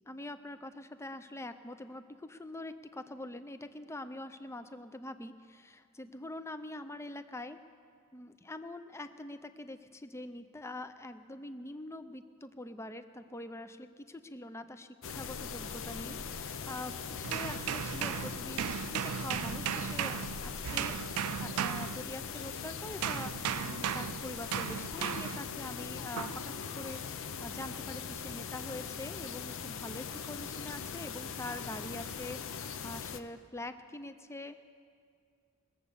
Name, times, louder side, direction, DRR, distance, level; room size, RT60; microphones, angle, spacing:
voice 1, 0.1-7.6 8.1-23.3 23.6-34.6, left 1 dB, 15° left, 10 dB, 0.5 m, -44 dB
sound 1, 15.0-33.2, left 6 dB, 65° left, 0.6 m, -41 dB
sound 2, 17.2-22.5 23.0-25.5 26.2-26.5, right 9 dB, 85° right, 0.4 m, -36 dB
21.0 x 7.9 x 6.9 m, 2.2 s
head